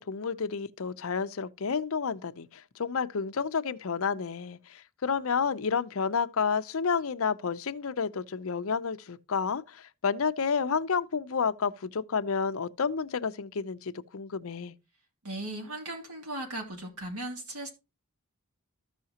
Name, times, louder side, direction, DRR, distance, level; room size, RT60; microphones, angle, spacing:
voice 1, 0.0-14.7, left 5 dB, 70° left, 0.6 m, -30 dB
voice 2, 15.2-17.7, right 1 dB, 90° right, 2.6 m, -37 dB
14.5 x 5.7 x 2.8 m
head